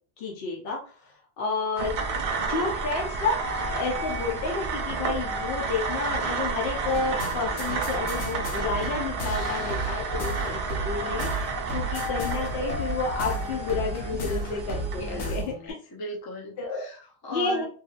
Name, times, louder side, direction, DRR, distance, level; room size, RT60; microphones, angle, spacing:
voice 1, 0.2-1.9 2.5-3.4 3.7-15.7 16.6-16.9 17.3-17.6, left 4 dB, 65° left, -1 dB, 0.8 m, -30 dB
sound 1, 1.8-15.4, right 4 dB, 60° right, 0.7 m, -31 dB
sound 2, 2.9-14.1, left 2 dB, 15° left, 1.1 m, -39 dB
sound 3, 6.8-15.7, right 1 dB, 85° left, 0.9 m, -35 dB
voice 2, 15.0-15.3 15.9-17.6, left 1 dB, 30° left, 0 dB, 0.4 m, -37 dB
2.7 x 2.7 x 2.4 m, 0.40 s
omnidirectional pair, 1.2 m